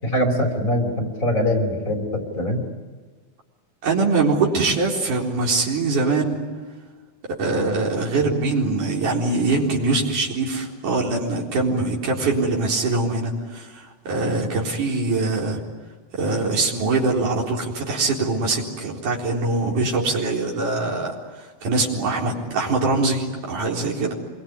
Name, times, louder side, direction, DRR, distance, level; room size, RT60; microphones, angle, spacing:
voice 1, 0.0-2.7, left 1 dB, 25° left, 3 dB, 5.0 m, -23 dB
voice 2, 3.8-6.4 7.4-15.6 16.1-21.1 21.6-24.1, right 3 dB, 70° right, -2 dB, 5.6 m, -23 dB
27.0 x 22.5 x 9.7 m, 1.4 s
omnidirectional pair, 3.7 m